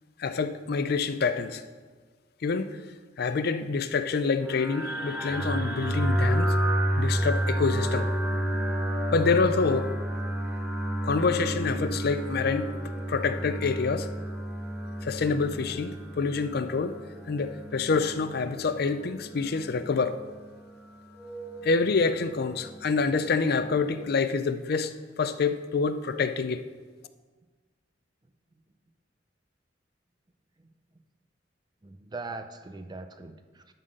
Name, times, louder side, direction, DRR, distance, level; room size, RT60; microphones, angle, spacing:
voice 1, 0.2-1.6 2.4-2.8 3.2-6.6 7.0-8.1 9.1-9.9 11.0-12.7 13.1-14.1 15.0-17.0 17.3-20.2 21.6-26.6, left 4 dB, 60° left, 0.5 m, -27 dB
sound 1, 4.4-24.1, right 1 dB, 5° right, 0.9 m, -31 dB
voice 2, 31.8-33.7, right 3 dB, 25° right, 0.5 m, -41 dB
11.5 x 4.1 x 6.3 m
head